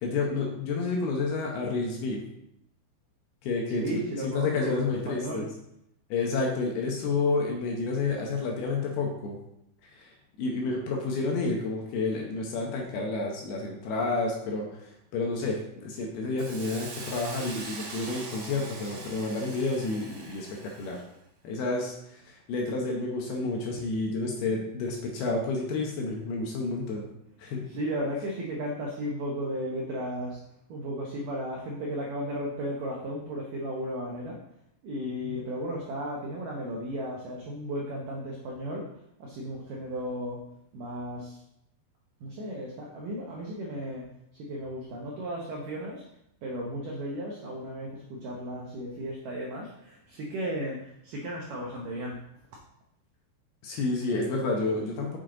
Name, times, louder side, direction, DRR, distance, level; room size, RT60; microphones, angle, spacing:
voice 1, 0.0-2.2 3.4-5.5 6.1-9.4 9.9-10.1 10.4-21.0 21.4-27.1 27.4-27.7 35.0-35.4 53.6-55.2, left 3 dB, 70° left, 0 dB, 2.6 m, -30 dB
voice 2, 3.7-5.5 27.7-30.4 30.7-34.4 34.8-38.9 39.2-41.4 42.2-46.0 46.4-52.2, equal, 85° right, -2 dB, 1.9 m, -35 dB
Hiss, 16.4-21.1, right 3 dB, 60° right, 3.2 m, -42 dB
7.0 x 6.3 x 3.8 m, 0.78 s
omnidirectional pair, 5.3 m